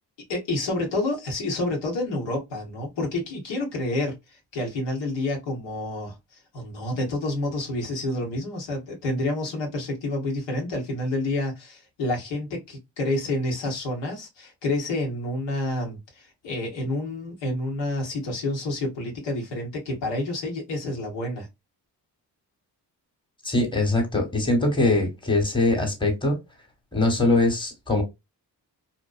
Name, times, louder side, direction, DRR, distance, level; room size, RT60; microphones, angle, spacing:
voice 1, 0.3-6.1 6.5-21.5, left 2 dB, 80° left, 1.1 m, -29 dB
voice 2, 23.4-26.4 26.9-28.0, left 2 dB, 10° left, 1.1 m, -22 dB
2.6 x 2.1 x 2.3 m
supercardioid pair, 45°, 43 cm